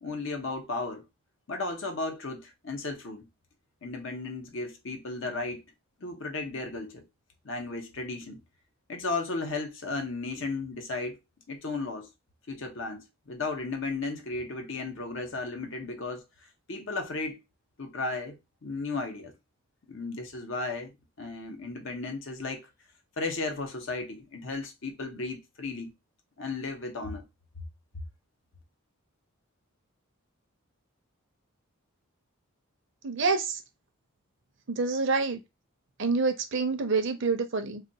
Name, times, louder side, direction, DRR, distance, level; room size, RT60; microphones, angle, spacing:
voice 1, 0.0-1.0 1.5-3.3 3.8-5.6 6.0-7.0 7.4-8.4 8.9-11.2 11.5-12.1 12.5-16.2 16.7-17.4 17.8-19.3 19.9-20.9 21.2-22.6 23.2-25.9 26.4-27.2, left 3 dB, 60° left, 0.7 m, -34 dB
voice 2, 33.0-33.6 34.7-35.4 36.0-37.8, right 4 dB, 55° right, 0.5 m, -27 dB
2.3 x 2.3 x 3.8 m
head